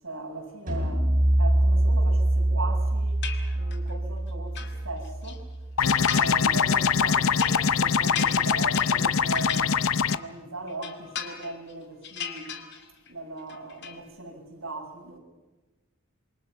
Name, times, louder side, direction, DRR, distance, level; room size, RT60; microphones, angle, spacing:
voice 1, 0.0-1.1 1.4-5.4 6.1-9.7 10.1-12.6 13.1-15.2, right 2 dB, 75° right, 1 dB, 6.4 m, -38 dB
sound 1, 0.7-6.1, right 1 dB, 40° right, 7.2 m, -25 dB
sound 2, 3.2-3.9 4.3-5.4 5.9-6.5 6.8-10.4 10.7-11.7 12.0-13.1 13.4-14.0, left 7 dB, 55° left, 2.5 m, -38 dB
sound 3, 5.8-10.2, left 6 dB, 85° left, 0.7 m, -23 dB
27.5 x 24.0 x 5.9 m, 1.1 s
head